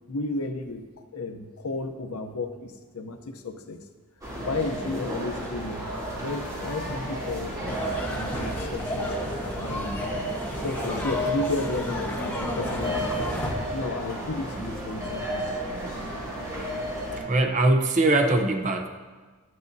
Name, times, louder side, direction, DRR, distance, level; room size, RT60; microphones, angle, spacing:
voice 1, 0.1-0.9 1.1-3.8 4.4-9.1 9.6-10.2 10.6-13.3 13.7-15.5, left 3 dB, 80° left, 6 dB, 0.7 m, -33 dB
sound 1, 4.2-17.2, equal, 15° right, 2.7 m, -32 dB
sound 2, 7.6-13.5, left 1 dB, 10° left, 1.2 m, -33 dB
voice 2, 17.3-18.9, right 2 dB, 35° right, 4 dB, 0.6 m, -21 dB
12.0 x 9.5 x 2.7 m, 1.4 s
head